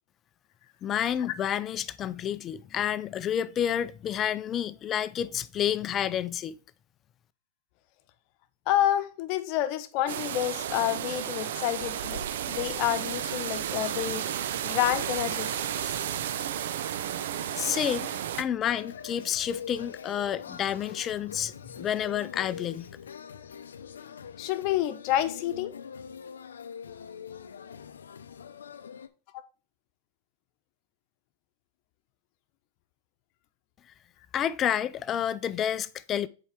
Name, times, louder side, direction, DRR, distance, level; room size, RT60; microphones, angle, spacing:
voice 1, 0.8-6.6 17.6-18.1 18.4-23.0 34.3-36.3, left 9 dB, 30° left, 0.4 m, -29 dB
voice 2, 8.7-14.2 14.6-16.0 24.4-25.7 29.3-29.4, left 13 dB, 50° left, 0.9 m, -29 dB
sound 1, 10.1-18.4, right 10 dB, 70° right, 0.5 m, -32 dB
sound 2, 18.6-29.1, left 7 dB, 85° left, 0.5 m, -43 dB
7.1 x 4.8 x 3.4 m
hypercardioid pair, 110°, 0 cm